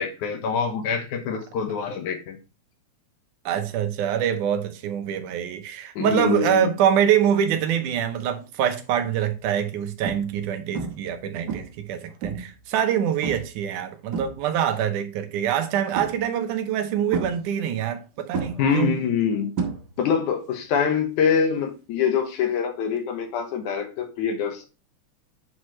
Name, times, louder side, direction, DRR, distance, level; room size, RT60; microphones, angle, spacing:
voice 1, 0.0-2.4 6.0-6.7 18.6-19.5 20.0-24.7, left 7 dB, 80° left, 2.6 m, -25 dB
voice 2, 3.5-19.0, right 9 dB, 85° right, 2.4 m, -25 dB
sound 1, 8.4-8.7 9.3-9.4 10.0-10.5 10.7-11.2 11.5-12.6 13.2-13.6 13.9-14.8 15.9-16.5 17.1-18.0 18.3-20.2 20.5-20.9 23.0-23.1, right 5 dB, 45° right, 1.4 m, -32 dB
9.5 x 4.7 x 3.1 m
omnidirectional pair, 3.5 m